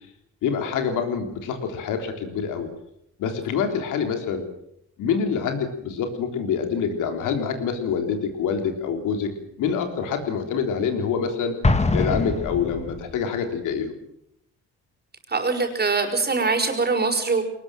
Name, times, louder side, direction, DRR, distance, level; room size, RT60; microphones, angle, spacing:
voice 1, 0.4-2.7 3.2-4.4 5.0-9.3 9.6-11.6 11.9-13.9, left 6 dB, 90° left, 6 dB, 3.7 m, -26 dB
Explosion, 11.6-13.2, left 2 dB, 20° left, 2.0 m, -23 dB
voice 2, 15.3-17.4, right 4 dB, 35° right, 4 dB, 5.3 m, -23 dB
22.0 x 19.5 x 7.6 m, 0.75 s
cardioid pair, 90°, 30 cm